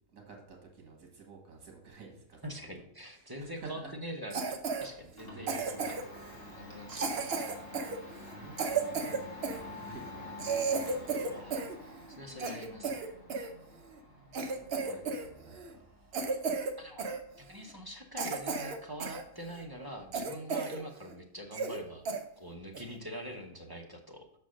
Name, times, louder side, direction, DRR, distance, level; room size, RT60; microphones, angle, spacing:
voice 1, 0.1-2.7 3.1-4.0 5.3-5.5 8.0-11.0 11.7-12.2 14.4-14.5 14.8-15.6, right 4 dB, 75° right, 2 dB, 2.0 m, -51 dB
voice 2, 2.4-6.0 6.5-7.3 11.1-11.7 12.1-13.2 16.8-17.1 17.4-22.1 22.4-24.3, equal, 20° right, 2 dB, 0.7 m, -44 dB
Domestic sounds home sounds, 4.3-20.2, left 2 dB, 45° left, 1.8 m, -49 dB
Cough, 4.3-4.9 5.5-6.2 6.9-9.6 10.1-10.2 10.4-11.8 12.1-13.5 14.0-14.1 14.3-15.3 15.5-15.7 16.1-16.7 17.0-17.2 17.7-17.8 18.2-19.2 19.6-19.7 20.1-20.8 21.1-21.2 21.5-21.8 22.1-22.2 22.7-23.0, right 4 dB, 55° right, 0.9 m, -33 dB
6.2 x 4.4 x 6.2 m, 0.71 s
omnidirectional pair, 1.4 m